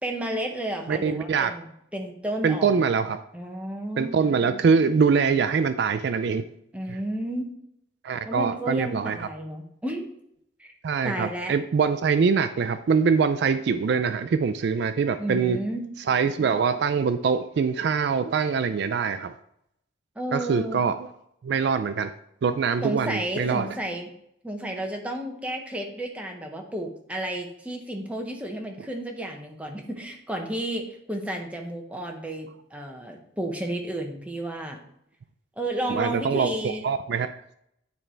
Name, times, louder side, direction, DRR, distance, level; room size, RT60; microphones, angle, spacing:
voice 1, 0.0-1.6 1.9-2.9 3.3-4.2 6.7-7.5 8.2-10.1 10.6-10.7 11.0-11.5 15.2-15.8 20.2-20.8 22.8-24.1 24.4-34.8 35.6-36.9, right 1 dB, 5° right, 2 dB, 0.9 m, -32 dB
voice 2, 0.9-1.5 2.4-3.2 4.0-6.4 6.9-7.0 8.0-9.3 10.8-15.6 16.1-19.3 20.3-21.1 21.4-22.1 22.4-23.7 35.9-37.3, right 5 dB, 55° right, 10 dB, 0.3 m, -23 dB
9.7 x 3.3 x 4.4 m, 0.74 s
head